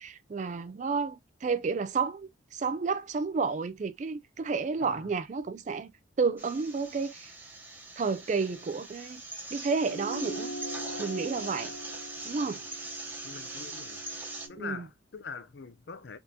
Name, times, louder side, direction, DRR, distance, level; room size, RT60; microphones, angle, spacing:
voice 1, 0.0-5.9 6.2-7.3 8.0-9.2 9.5-10.5 11.0-11.7 12.2-12.6 14.6-14.8, right 4 dB, 35° right, 0.3 m, -31 dB
voice 2, 4.8-5.1 13.2-14.0 14.5-16.2, left 5 dB, 55° left, 0.5 m, -43 dB
sound 1, 6.4-14.5, right 2 dB, 10° right, 0.8 m, -42 dB
sound 2, 9.8-14.6, right 1 dB, 75° left, 1.4 m, -42 dB
3.6 x 3.6 x 2.7 m
head